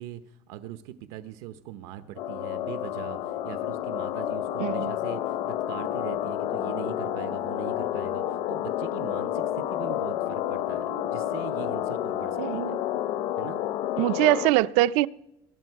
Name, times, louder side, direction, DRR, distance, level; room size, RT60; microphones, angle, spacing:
voice 1, 0.0-12.7 13.4-13.6, right 12 dB, 90° right, 0.9 m, -41 dB
sound 1, 2.2-14.5, left 12 dB, 60° left, 0.7 m, -30 dB
voice 2, 4.6-4.9 12.4-12.8 14.0-15.1, right 18 dB, 75° right, 0.5 m, -23 dB
23.0 x 11.5 x 4.7 m
cardioid pair, 175°, 11 cm